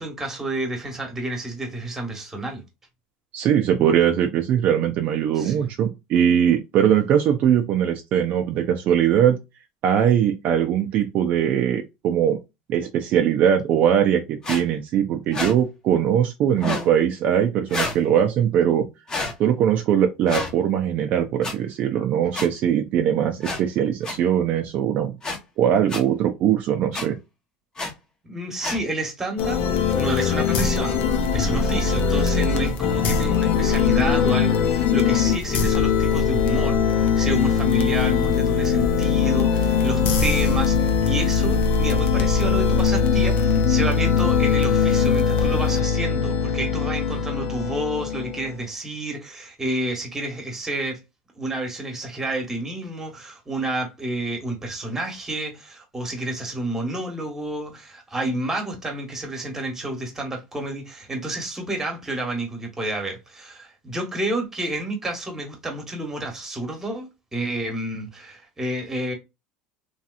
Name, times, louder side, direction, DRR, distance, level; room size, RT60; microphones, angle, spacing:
voice 1, 0.0-2.6 5.3-5.7 28.2-29.6 29.9-31.0 31.3-51.0 51.4-69.1, right 1 dB, 10° right, 1.3 m, -30 dB
voice 2, 3.3-9.4 9.8-12.4 12.7-18.9 19.4-25.1 25.6-27.1, right 9 dB, 50° right, 0.5 m, -21 dB
sound 1, 14.4-14.6 15.3-15.5 16.6-16.9 17.7-18.0 19.1-19.3 20.3-20.5 21.4-21.5 22.3-22.5 23.4-23.6 24.0-24.2 25.2-25.4 25.9-26.0 26.9-27.1 27.8-27.9 28.6-28.8, left 2 dB, 20° left, 0.9 m, -28 dB
sound 2, 29.4-48.6, left 6 dB, 55° left, 0.7 m, -21 dB
3.2 x 2.7 x 2.4 m
supercardioid pair, 130°, 3 cm